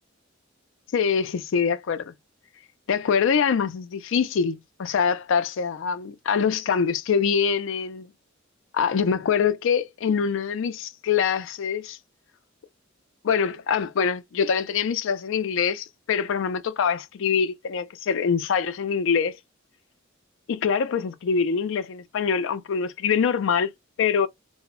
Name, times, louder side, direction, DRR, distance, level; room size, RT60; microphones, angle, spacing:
voice 1, 0.9-2.1 2.9-8.1 8.7-12.0 13.2-19.4 20.5-23.7 24.0-24.3, left 6 dB, 65° left, 0.4 m, -24 dB
2.0 x 2.0 x 3.5 m
head